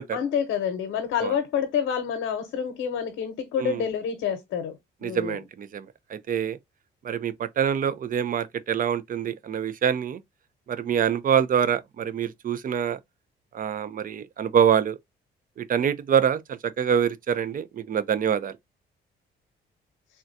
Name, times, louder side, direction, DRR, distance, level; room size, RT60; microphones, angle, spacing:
voice 1, 0.1-5.4, left 7 dB, 85° left, 0.8 m, -28 dB
voice 2, 5.0-6.6 7.0-10.2 10.7-13.0 13.5-15.0 15.6-18.5, right 8 dB, 45° right, 0.5 m, -25 dB
3.7 x 2.2 x 2.6 m
cardioid pair, 90°, 20 cm